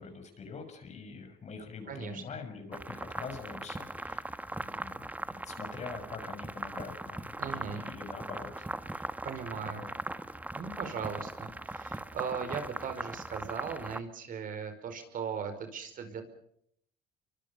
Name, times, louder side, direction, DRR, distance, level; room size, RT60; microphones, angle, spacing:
voice 1, 0.0-4.3 4.6-9.1 9.6-9.9, left 5 dB, 40° left, 7 dB, 6.4 m, -45 dB
voice 2, 1.9-2.2 7.4-7.8 9.2-9.9 10.6-16.2, right 6 dB, 55° right, 8 dB, 5.1 m, -38 dB
sound 1, 2.7-14.0, right 2 dB, 10° right, 1.3 m, -40 dB
29.0 x 24.0 x 5.2 m, 0.69 s
cardioid pair, 110°, 17 cm